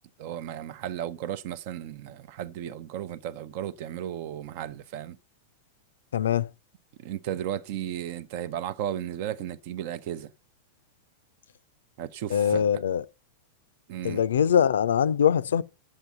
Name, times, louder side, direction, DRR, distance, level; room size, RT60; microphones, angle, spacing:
voice 1, 0.2-5.2 7.0-10.3 12.0-12.7 13.9-14.2, right 11 dB, 50° right, 0.6 m, -34 dB
voice 2, 6.1-6.5 12.3-13.0 14.0-15.6, left 8 dB, 65° left, 0.4 m, -23 dB
9.0 x 7.5 x 5.7 m
figure-of-eight pair, 90°, 0 cm